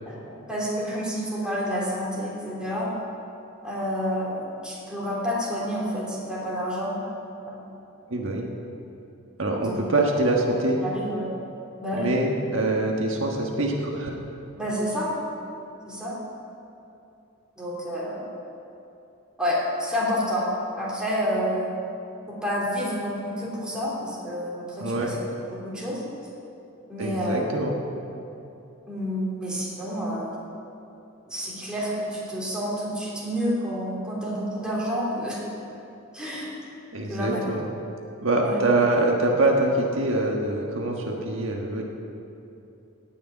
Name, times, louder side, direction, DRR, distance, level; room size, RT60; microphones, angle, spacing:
voice 1, 0.1-3.0 3.6-7.0 7.4-7.6 9.6-9.8 10.8-11.3 11.8-12.1 14.6-15.1 15.9-16.2 17.6-18.3 19.4-20.4 20.7-21.7 22.3-25.2 25.6-26.0 26.9-27.4 28.9-30.5 31.3-35.4 36.1-36.5 37.1-37.4 38.4-38.6, equal, 5° right, -6 dB, 3.4 m, -29 dB
voice 2, 8.1-8.5 9.4-10.8 11.9-14.1 24.8-25.1 27.0-27.7 36.9-37.7 38.2-41.8, right 2 dB, 65° right, 0 dB, 1.5 m, -24 dB
17.5 x 6.7 x 8.9 m, 2.8 s
head